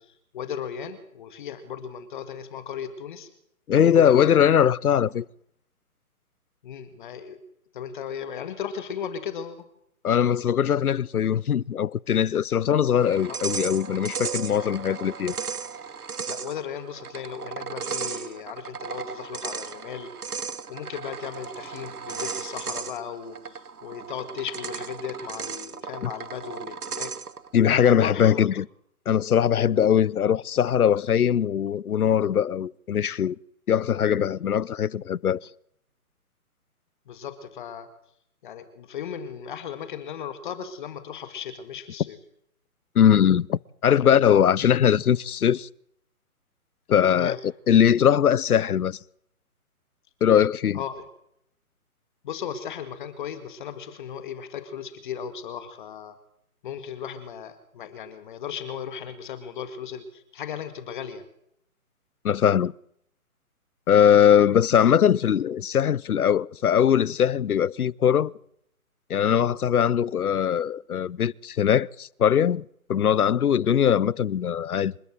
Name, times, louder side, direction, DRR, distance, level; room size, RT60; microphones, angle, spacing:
voice 1, 0.0-3.3 3.7-4.4 6.6-7.4 7.7-9.6 13.3-13.4 14.5-14.9 16.3-20.1 20.7-27.1 27.7-28.4 37.1-37.9 38.4-42.2 47.1-47.4 50.7-51.0 52.2-56.2 56.6-61.2, left 8 dB, 35° left, 1.8 m, -36 dB
voice 2, 3.7-5.3 10.0-15.4 26.0-26.1 27.5-28.7 29.1-33.4 33.7-35.4 42.9-45.7 46.9-47.4 47.7-49.0 50.2-50.8 62.2-62.7 63.9-68.3 69.1-72.6 72.9-74.9, left 9 dB, 80° left, 0.7 m, -21 dB
sound 1, 13.0-27.5, right 6 dB, 80° right, 1.5 m, -35 dB
27.0 x 12.5 x 7.9 m
hypercardioid pair, 150°, 44 cm